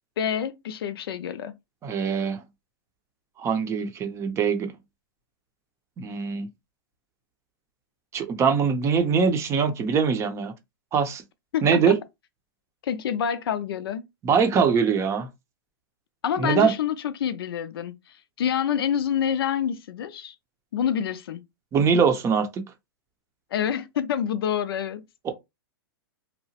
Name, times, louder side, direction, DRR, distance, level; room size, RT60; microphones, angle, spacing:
voice 1, 0.2-1.5 11.5-11.9 12.8-14.0 16.2-20.3 20.7-21.4 23.5-25.0, left 9 dB, 80° left, 0.4 m, -27 dB
voice 2, 1.8-2.4 3.4-4.7 6.0-6.5 8.1-10.5 10.9-11.2 11.6-12.0 14.2-15.3 16.4-16.7 21.7-22.6 25.2-25.3, right 6 dB, 25° right, 0.5 m, -22 dB
2.8 x 2.0 x 2.7 m
hypercardioid pair, 130°, 12 cm